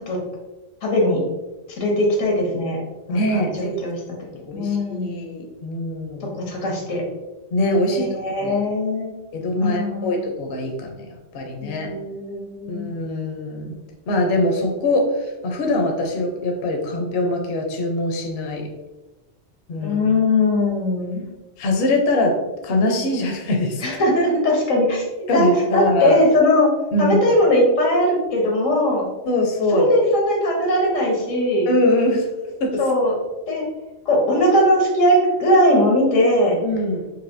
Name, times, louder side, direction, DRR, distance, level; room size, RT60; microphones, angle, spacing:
voice 1, 0.8-1.2 1.8-2.8 3.1-4.0 4.5-5.2 6.2-7.0 7.9-9.1 9.6-10.2 11.6-12.9 19.8-21.2 23.8-25.0 25.3-26.7 27.0-29.1 29.7-31.7 32.8-33.1 33.5-33.6 34.0-36.6, left 1 dB, 85° left, -1 dB, 1.4 m, -19 dB
voice 2, 3.1-3.8 4.3-6.3 7.5-8.1 8.4-8.6 9.3-11.9 12.7-13.8 14.1-18.7 19.7-20.0 21.6-22.4 22.6-23.8 25.3-26.2 26.9-27.2 29.3-29.9 31.7-32.3 32.6-32.8 36.6-37.0, left 1 dB, 60° left, 2 dB, 0.8 m, -22 dB
4.8 x 2.6 x 2.5 m, 1.1 s
omnidirectional pair, 1.3 m